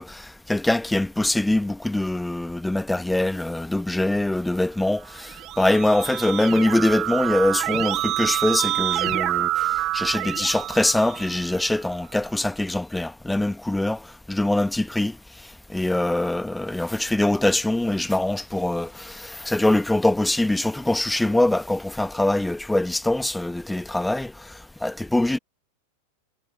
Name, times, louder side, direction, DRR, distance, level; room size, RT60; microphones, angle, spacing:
voice 1, 0.0-15.2 15.7-24.5 24.8-25.4, left 1 dB, 5° left, 1.4 m, -23 dB
Keyboard (musical), 5.1-11.7, right 15 dB, 35° right, 2.0 m, -27 dB
figure-of-eight pair, 90°, 0 cm